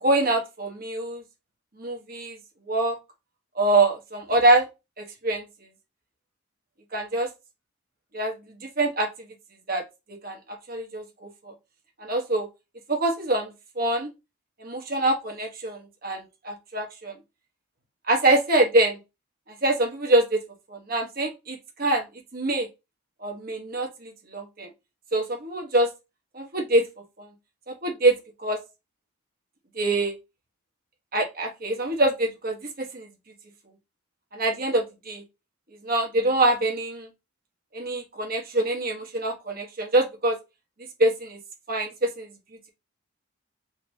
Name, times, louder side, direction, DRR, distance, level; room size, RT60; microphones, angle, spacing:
voice 1, 0.0-1.2 1.8-2.4 2.7-3.0 3.6-4.7 5.0-5.4 6.9-7.3 8.1-8.3 8.6-9.1 9.7-9.8 10.2-10.4 10.7-11.5 12.0-12.5 12.9-14.1 14.6-17.1 18.1-19.0 19.6-20.4 20.7-22.0 22.3-22.7 23.2-24.7 25.1-25.9 26.3-26.8 27.2-27.3 27.7-28.1 28.4-28.6 29.8-30.1 31.1-33.1 34.3-35.2 35.8-37.1 37.7-40.4 41.0-41.4 41.7-42.3, right 2 dB, 45° right, 2 dB, 1.2 m, -24 dB
3.9 x 2.9 x 2.7 m, 0.24 s
head